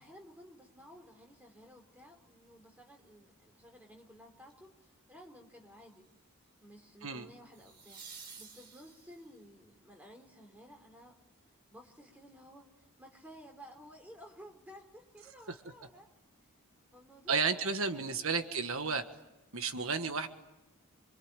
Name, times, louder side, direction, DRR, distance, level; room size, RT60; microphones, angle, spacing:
voice 1, 0.0-6.1 6.6-11.2 11.7-16.1 16.9-18.4, equal, 5° right, 3 dB, 4.0 m, -55 dB
sound 1, 4.5-4.8 7.5-9.4 12.3-12.4, right 5 dB, 50° right, 4.4 m, -51 dB
voice 2, 17.3-19.0 19.5-20.3, right 4 dB, 75° right, 8 dB, 1.5 m, -32 dB
27.0 x 24.5 x 9.0 m, 0.99 s
head